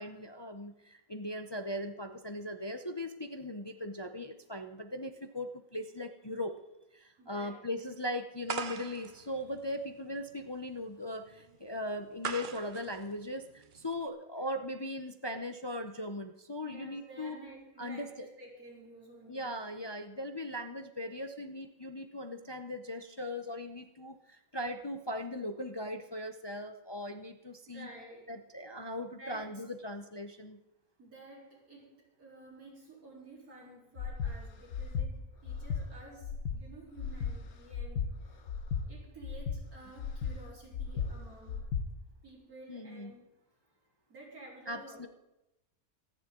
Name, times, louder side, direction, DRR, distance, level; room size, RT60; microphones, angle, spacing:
voice 1, 0.0-6.6 6.9-17.4 17.8-18.1 19.3-27.9 28.3-30.6 42.7-43.1 44.7-45.1, left 1 dB, 30° left, 6 dB, 0.5 m, -39 dB
voice 2, 7.2-7.6 16.6-19.6 27.7-28.3 29.1-29.6 31.0-38.4 38.9-41.7 42.2-43.2 44.1-45.1, right 2 dB, 85° right, -3 dB, 4.3 m, -52 dB
sound 1, 8.5-14.1, right 6 dB, 45° right, 0.8 m, -42 dB
Breathing, 34.0-34.3 34.7-35.1 35.5-35.8 36.2-36.6 37.0-37.3 37.7-38.1 38.5-38.8 39.2-39.6 40.0-40.3 40.7-41.1 41.5-41.8, left 6 dB, 80° left, 1.4 m, -34 dB
25.0 x 10.5 x 3.7 m, 0.91 s
omnidirectional pair, 1.5 m